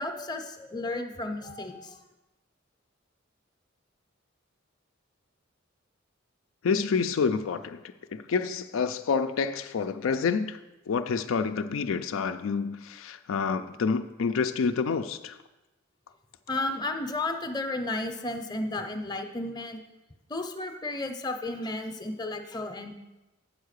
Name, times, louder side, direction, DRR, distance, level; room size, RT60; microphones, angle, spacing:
voice 1, 0.0-2.0 16.5-19.8 20.3-22.9, left 2 dB, 20° left, 5 dB, 0.6 m, -33 dB
voice 2, 6.6-7.8 8.1-10.6 10.9-15.4, left 5 dB, 85° left, 8 dB, 0.4 m, -28 dB
8.9 x 4.6 x 6.5 m, 1.0 s
head